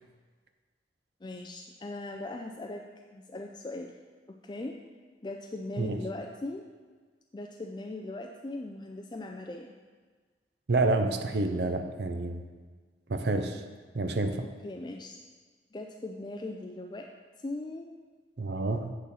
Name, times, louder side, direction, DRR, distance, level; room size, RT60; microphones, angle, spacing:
voice 1, 1.2-2.8 3.1-3.9 4.3-4.8 5.2-6.6 7.3-9.7 14.4-15.2 15.7-17.1 17.4-17.9, left 2 dB, 25° left, 2 dB, 0.4 m, -39 dB
voice 2, 10.7-12.4 13.1-13.6 13.9-14.5 18.4-18.9, right 2 dB, 65° right, 6 dB, 0.6 m, -28 dB
8.6 x 6.9 x 4.1 m, 1.5 s
head